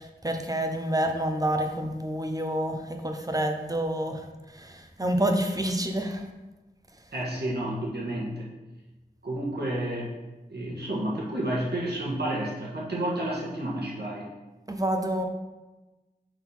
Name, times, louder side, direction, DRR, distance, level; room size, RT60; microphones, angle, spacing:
voice 1, 0.0-6.3 14.7-15.2, right 1 dB, 20° right, 4 dB, 0.7 m, -28 dB
voice 2, 7.1-8.5 9.2-10.1 10.5-14.3, right 1 dB, 80° right, -5 dB, 1.6 m, -30 dB
6.0 x 3.8 x 4.4 m, 1.1 s
wide cardioid pair, 55°, 17 cm